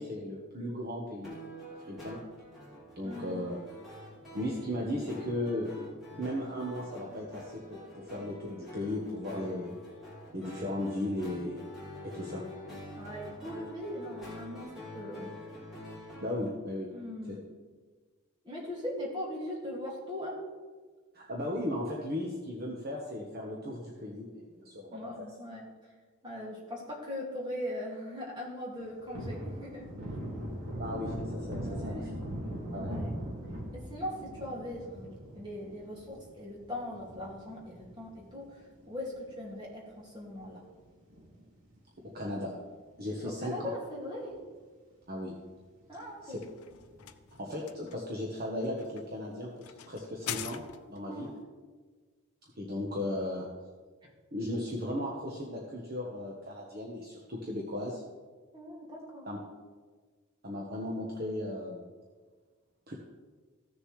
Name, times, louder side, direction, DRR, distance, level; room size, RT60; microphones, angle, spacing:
voice 1, 0.0-1.4 1.6-2.2 3.0-3.6 4.3-5.9 6.2-9.7 10.3-11.6 12.0-12.4 16.2-16.9 21.1-25.0 30.8-32.1 32.7-32.9 42.0-42.5 43.0-43.7 45.1-45.3 46.2-46.4 47.4-50.6 50.9-51.3 52.6-53.4 54.3-58.0 59.3-59.4 60.4-61.8 62.9-63.0, left 1 dB, 40° right, -2 dB, 1.2 m, -36 dB
sound 1, 1.2-16.5, left 1 dB, ahead, 2.7 m, -46 dB
voice 2, 3.0-3.4 13.0-14.7 14.9-15.3 16.9-17.4 18.4-20.4 24.9-25.7 26.2-29.9 31.6-32.1 32.8-33.1 33.7-40.6 43.2-44.4 45.9-46.4 51.1-51.3 58.5-59.3, left 1 dB, 20° right, -3 dB, 2.2 m, -40 dB
Thunder, 28.7-39.5 39.8-39.9 40.3-41.8 42.1-42.2 42.6-43.4 43.8-43.9 44.2-44.3 46.7-47.2, equal, 80° right, 2.2 m, -41 dB
sound 2, 46.0-51.1, left 9 dB, 80° left, 0.5 m, -44 dB
15.5 x 6.7 x 3.2 m, 1.4 s
head